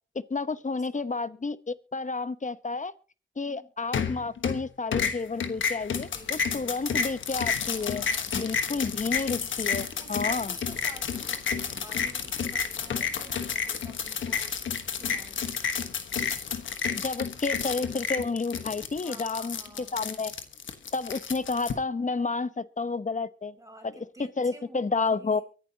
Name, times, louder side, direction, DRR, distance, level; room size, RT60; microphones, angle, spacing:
voice 1, 0.1-2.9 3.4-8.1 8.3-10.5 17.0-20.3 20.9-23.5 23.8-23.9 24.4-25.4, left 4 dB, 40° left, 0.9 m, -31 dB
voice 2, 0.7-1.1 3.3-3.7 5.9-6.9 7.7-9.1 10.0-14.6 14.9-15.6 19.0-20.0 23.6-25.4, right 1 dB, 15° right, 6.0 m, -50 dB
sound 1, 3.9-4.6 4.9-21.7, left 6 dB, 90° left, 1.3 m, -30 dB
23.5 x 11.0 x 2.9 m
cardioid pair, 40°, 19 cm